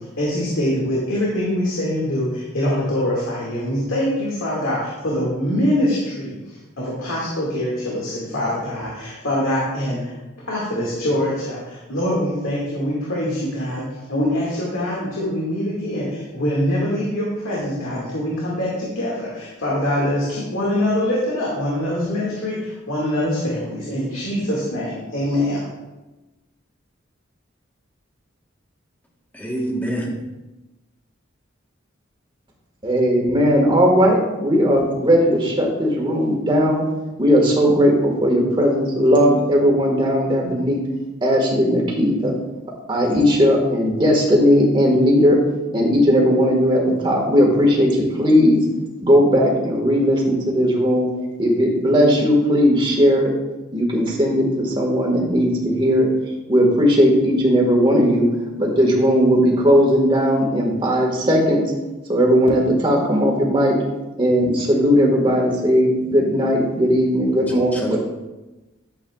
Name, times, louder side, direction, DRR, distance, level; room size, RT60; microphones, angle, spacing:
voice 1, 0.2-10.2 10.4-25.6, left 1 dB, 85° left, -5 dB, 2.1 m, -24 dB
voice 2, 29.3-30.1 67.5-68.0, right 1 dB, 10° left, -1 dB, 1.3 m, -26 dB
voice 3, 32.8-36.8 37.2-40.8 41.2-42.4 42.9-45.4 45.7-48.6 49.0-51.1 51.4-53.3 53.7-56.1 56.5-58.3 58.6-61.6 62.1-63.7 64.2-68.0, equal, 25° right, -1 dB, 1.7 m, -17 dB
12.0 x 7.8 x 2.4 m, 1.1 s
head